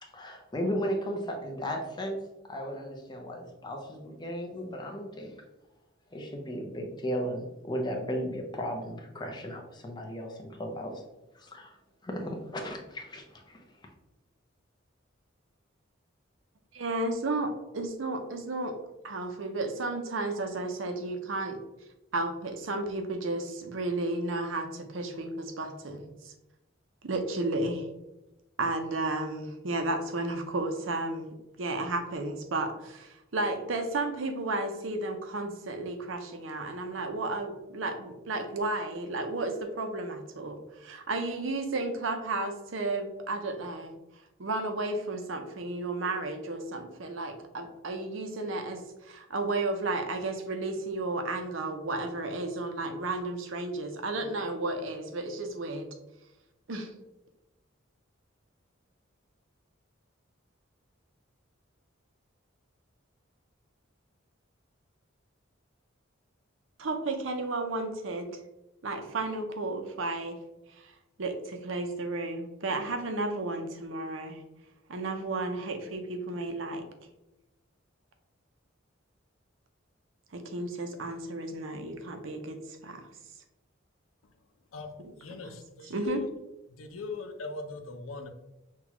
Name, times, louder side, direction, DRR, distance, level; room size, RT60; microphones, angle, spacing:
voice 1, 0.0-5.3 6.1-11.0 11.3-13.6, equal, 20° left, 1 dB, 0.7 m, -35 dB
voice 2, 16.7-18.8 19.0-21.6 22.1-26.3 27.0-27.9 28.6-43.9 44.4-55.9 56.7-56.9 66.8-68.3 68.8-70.4 70.7-74.4 74.9-76.9 80.3-83.1 85.4-85.6 85.8-86.2, right 2 dB, 70° right, 6 dB, 0.6 m, -33 dB
voice 3, 85.2-86.3 86.7-88.3, left 3 dB, 90° left, 6 dB, 0.6 m, -39 dB
5.9 x 2.4 x 2.9 m, 0.94 s
head